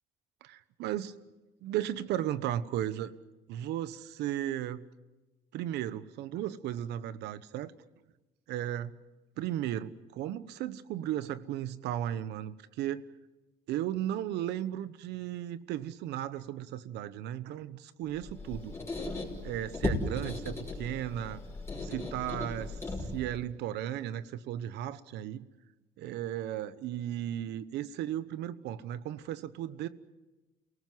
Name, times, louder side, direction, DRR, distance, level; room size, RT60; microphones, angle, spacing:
voice 1, 0.4-1.2 1.6-3.1 3.5-4.9 5.5-7.7 8.5-8.9 9.4-13.0 13.7-18.7 19.4-21.4 21.8-22.8 23.1-25.5 26.0-29.9, right 12 dB, 80° right, 15 dB, 1.1 m, -35 dB
Squeak, 18.2-23.4, left 2 dB, 15° left, 5.7 m, -37 dB
28.5 x 18.5 x 7.9 m, 1.1 s
cardioid pair, 110°, 17 cm